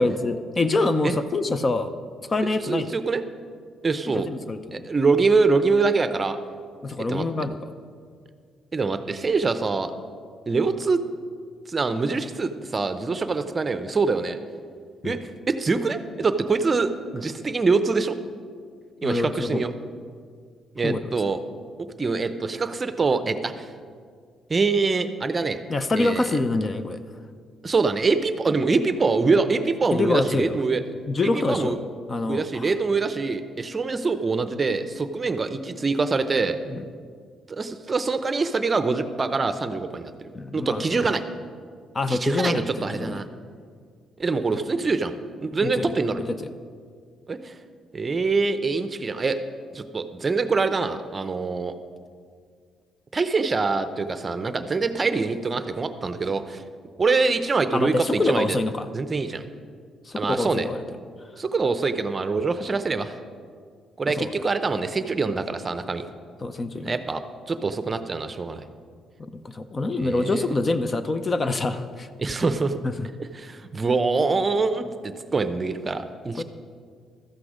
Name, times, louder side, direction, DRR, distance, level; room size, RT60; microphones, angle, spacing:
voice 1, 0.0-1.9 2.3-2.9 4.1-4.9 6.8-7.7 15.0-15.2 19.0-19.7 20.8-21.0 25.7-27.0 29.9-30.6 31.1-31.8 32.1-32.7 36.7-36.8 40.3-41.0 41.9-43.2 45.6-45.9 46.2-46.5 57.7-58.9 60.1-60.8 64.1-64.3 66.4-66.9 69.2-72.1 72.8-73.1 76.4-76.5, left 2 dB, 30° left, 11 dB, 0.6 m, -26 dB
voice 2, 2.6-3.2 3.8-4.3 4.7-6.4 7.1-7.3 8.7-9.9 10.5-11.0 11.7-14.4 15.0-18.1 19.0-19.7 20.8-21.4 22.0-23.7 24.5-25.6 26.0-26.3 27.6-30.8 31.2-31.8 32.3-36.6 37.5-41.2 42.1-43.3 44.2-46.2 47.3-47.6 47.9-49.4 49.7-51.7 53.1-56.6 57.0-58.6 58.9-59.5 60.2-60.7 61.4-63.2 64.0-66.1 66.8-68.7 70.0-70.6 72.2-72.8 73.3-76.4, right 4 dB, 30° right, 10 dB, 0.6 m, -24 dB
13.0 x 8.2 x 5.0 m, 2.1 s
cardioid pair, 90°, 0 cm